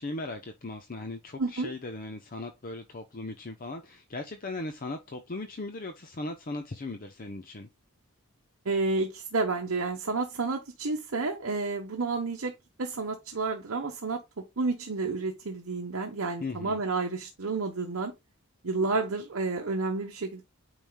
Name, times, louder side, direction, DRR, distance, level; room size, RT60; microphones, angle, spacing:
voice 1, 0.0-7.7 16.4-16.8, left 2 dB, 40° left, 0.7 m, -38 dB
voice 2, 1.4-1.7 8.6-12.5 12.8-14.2 14.6-18.1 18.6-20.4, right 3 dB, 65° right, 1.0 m, -30 dB
9.0 x 4.9 x 2.3 m
head